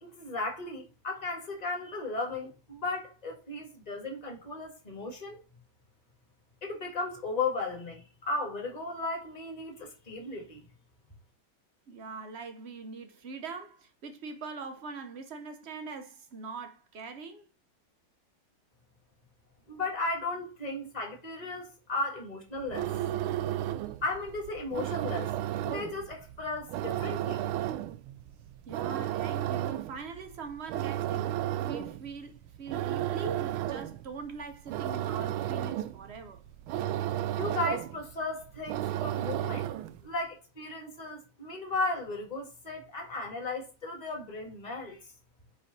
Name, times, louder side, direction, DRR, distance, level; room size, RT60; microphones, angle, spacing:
voice 1, 0.0-5.4 6.6-10.6 19.7-22.9 24.0-27.4 37.4-39.7 40.0-45.0, left 2 dB, 20° left, 1.7 m, -35 dB
voice 2, 11.9-17.5 28.7-31.3 31.6-36.4, right 4 dB, 60° right, 0.6 m, -42 dB
sound 1, 22.6-40.1, right 13 dB, 85° right, 1.4 m, -34 dB
9.2 x 3.3 x 4.0 m
omnidirectional pair, 2.2 m